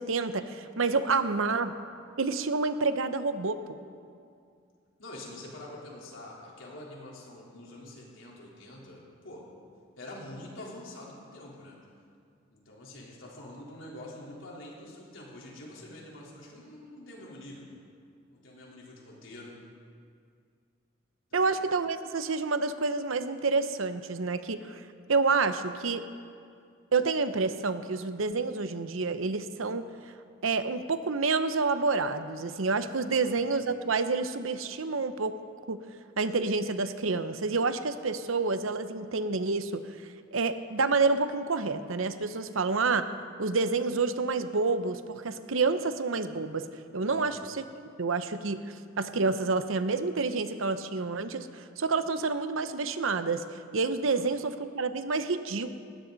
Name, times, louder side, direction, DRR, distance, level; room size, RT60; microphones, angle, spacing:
voice 1, 0.0-1.7 2.2-3.8 21.3-24.8 25.1-26.0 26.9-29.9 30.4-35.4 35.7-35.8 36.2-43.1 43.4-46.7 46.9-47.6 48.0-55.8, right 4 dB, 85° right, 11 dB, 0.8 m, -28 dB
voice 2, 5.0-9.5 10.0-11.8 12.5-17.7 18.3-19.6 21.3-21.5 33.0-33.3 47.0-47.3 54.1-54.3, left 1 dB, 75° left, -4 dB, 3.8 m, -46 dB
19.5 x 16.5 x 4.1 m, 2.3 s
head